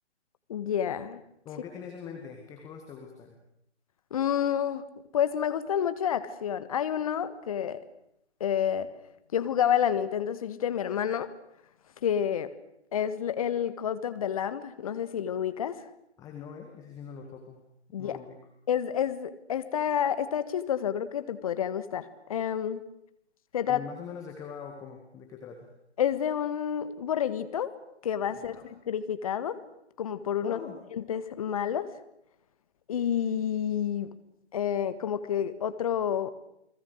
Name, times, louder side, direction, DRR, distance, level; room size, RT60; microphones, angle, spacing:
voice 1, 0.5-1.2 4.1-4.8 5.1-7.8 8.4-8.9 9.3-11.3 12.0-12.5 12.9-15.9 17.9-18.2 18.7-22.8 23.5-23.8 26.0-27.7 28.0-29.6 30.0-30.6 30.9-31.9 32.9-34.1 34.5-36.3, left 9 dB, 30° left, 12 dB, 1.6 m, -29 dB
voice 2, 1.5-3.4 16.2-17.6 18.0-18.4 23.7-25.7 28.3-28.6 30.4-30.8, left 7 dB, 10° left, 3 dB, 1.8 m, -43 dB
29.5 x 20.5 x 6.6 m, 0.79 s
figure-of-eight pair, 140°, 35 cm